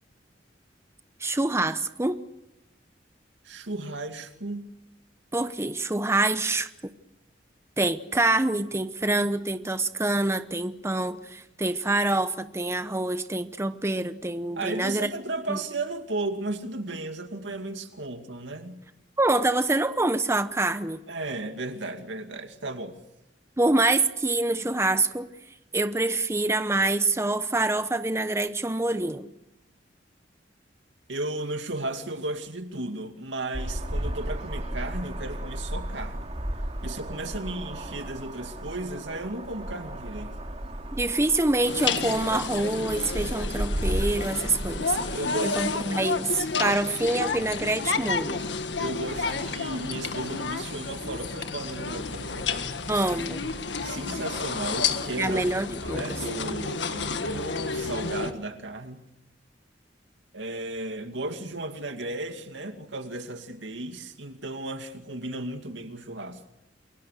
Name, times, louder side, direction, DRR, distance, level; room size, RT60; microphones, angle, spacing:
voice 1, 1.2-2.2 5.3-6.7 7.8-15.1 15.5-15.6 19.2-21.0 23.6-25.3 25.7-29.3 40.9-45.0 45.4-48.4 52.9-53.4 55.2-56.2, right 2 dB, 15° right, 0.8 m, -26 dB
voice 2, 3.4-4.6 14.6-18.8 21.1-23.0 31.1-36.3 36.8-40.3 45.1-46.1 48.8-52.5 53.8-55.4 55.8-59.1 60.3-66.4, right 2 dB, 90° right, 2.3 m, -35 dB
sound 1, 33.5-45.2, right 1 dB, 35° right, 2.5 m, -34 dB
sound 2, 41.6-58.3, left 4 dB, 75° left, 1.7 m, -31 dB
28.5 x 23.0 x 6.7 m
head